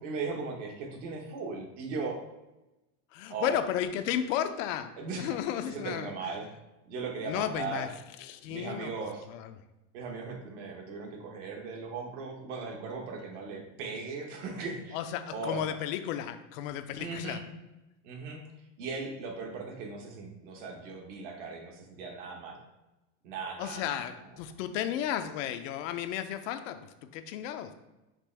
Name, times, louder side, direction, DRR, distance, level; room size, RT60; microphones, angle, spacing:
voice 1, 0.0-2.2 3.3-3.6 4.9-5.4 5.7-6.5 6.9-7.9 8.5-9.2 9.9-15.0 15.3-15.8 17.0-17.4 18.0-18.4 18.8-22.6 23.2-24.0, right 4 dB, 70° right, 2 dB, 1.2 m, -38 dB
voice 2, 3.1-6.3 7.3-7.9 8.2-8.9 9.3-9.5 14.9-17.4 23.6-27.7, left 10 dB, 75° left, 9 dB, 0.6 m, -34 dB
5.2 x 3.0 x 3.2 m, 1.0 s
supercardioid pair, 150°, 39 cm